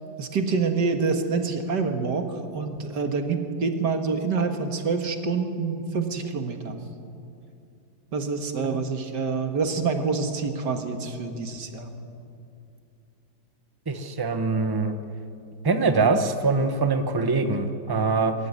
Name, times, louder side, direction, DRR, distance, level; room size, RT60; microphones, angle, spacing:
voice 1, 0.2-6.8 8.1-11.9, right 4 dB, 65° right, 5 dB, 2.2 m, -27 dB
voice 2, 13.9-15.0 15.6-18.3, right 4 dB, 15° right, 7 dB, 0.9 m, -23 dB
24.0 x 13.5 x 9.8 m, 2.6 s
omnidirectional pair, 2.1 m